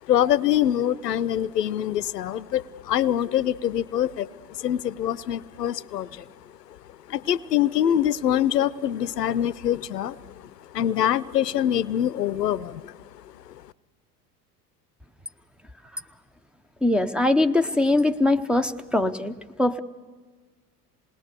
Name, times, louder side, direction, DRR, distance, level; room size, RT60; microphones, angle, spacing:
voice 1, 0.0-6.3 6.7-6.8 7.1-13.6, left 11 dB, 85° left, 21 dB, 0.6 m, -25 dB
voice 2, 16.8-19.8, left 2 dB, ahead, 4 dB, 0.6 m, -22 dB
27.0 x 19.5 x 6.8 m, 1.4 s
figure-of-eight pair, 70°, 47 cm